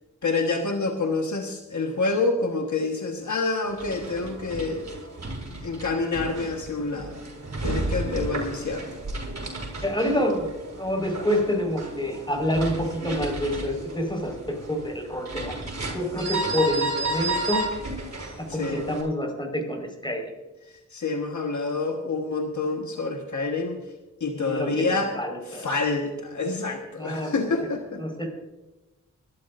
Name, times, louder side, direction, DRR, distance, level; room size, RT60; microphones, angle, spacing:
voice 1, 0.2-4.9 5.6-7.2 7.6-8.9 18.5-18.8 20.9-23.8 24.2-25.1 25.4-28.0, left 3 dB, 75° left, 3 dB, 1.4 m, -27 dB
sound 1, 3.7-19.0, right 2 dB, 60° right, 5.3 m, -33 dB
voice 2, 9.8-10.5 10.8-15.5 15.9-17.6 18.5-20.3 24.3-25.7 27.0-27.3 28.0-28.3, left 1 dB, 15° left, 2 dB, 4.9 m, -27 dB
25.0 x 12.5 x 2.6 m, 1.1 s
wide cardioid pair, 60°, 30 cm